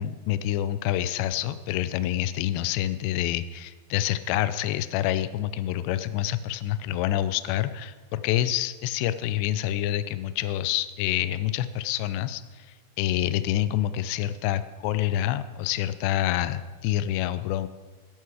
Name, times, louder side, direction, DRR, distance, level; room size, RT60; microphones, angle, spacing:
voice 1, 0.0-12.7 13.0-17.7, left 13 dB, 85° left, 13 dB, 2.8 m, -27 dB
14.0 x 12.0 x 4.8 m, 1.3 s
omnidirectional pair, 4.9 m